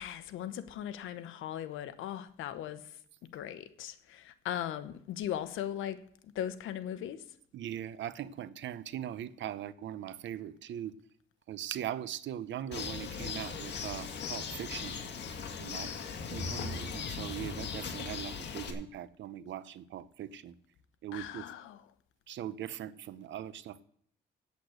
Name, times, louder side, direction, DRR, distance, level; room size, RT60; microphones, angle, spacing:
voice 1, 0.0-3.0 3.3-6.0 6.3-7.2 15.7-16.0 21.1-21.9, left 10 dB, 85° left, 1.0 m, -39 dB
voice 2, 7.5-10.9 11.5-15.0 15.6-15.9 16.3-20.5 21.0-21.4 22.3-23.8, right 10 dB, 70° right, 0.7 m, -40 dB
Bird, 12.7-18.7, left 5 dB, 60° left, 2.1 m, -38 dB
8.4 x 8.4 x 7.9 m
cardioid pair, 90°, 20 cm